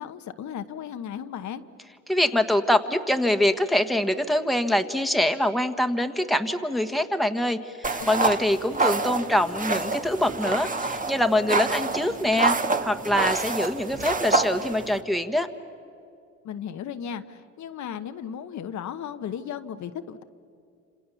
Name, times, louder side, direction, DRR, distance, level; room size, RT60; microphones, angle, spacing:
voice 1, 0.0-1.6 8.0-8.1 16.4-20.2, left 8 dB, 70° left, 9 dB, 1.1 m, -35 dB
voice 2, 2.1-15.5, left 1 dB, ahead, 6 dB, 1.5 m, -24 dB
sound 1, 7.8-15.0, right 3 dB, 25° right, 1.5 m, -27 dB
29.0 x 27.0 x 7.0 m, 2.6 s
cardioid pair, 90°, 30 cm